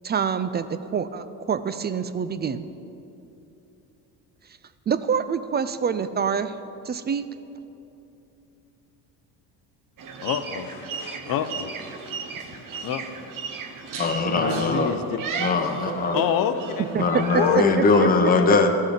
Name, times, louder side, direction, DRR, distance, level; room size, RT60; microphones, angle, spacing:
voice 1, 0.0-2.7 4.9-6.6 6.9-7.2 16.9-17.2 17.5-18.1, right 7 dB, 25° right, 12 dB, 0.3 m, -26 dB
sound 1, 10.0-17.6, right 5 dB, 55° right, 1.0 m, -33 dB
voice 2, 10.2-11.9 12.6-13.3 14.2-15.2 16.1-16.8 17.3-18.5, left 8 dB, 55° left, 10 dB, 0.7 m, -28 dB
voice 3, 14.0-14.9 15.4-16.2 17.0-18.7, left 4 dB, 20° left, 4 dB, 0.9 m, -21 dB
13.5 x 6.1 x 5.2 m, 2.9 s
cardioid pair, 95°, 40 cm